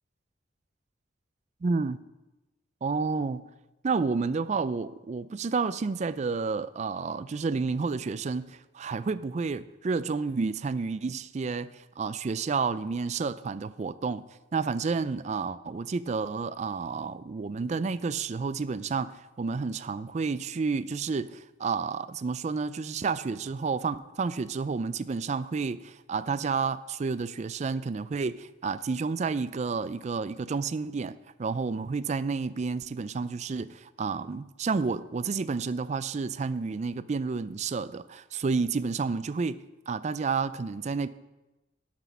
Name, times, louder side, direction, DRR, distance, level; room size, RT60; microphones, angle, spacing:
voice 1, 1.6-2.0 2.8-3.4 3.8-14.2 14.5-41.1, right 4 dB, 35° right, 0.3 m, -30 dB
12.0 x 6.1 x 5.7 m
head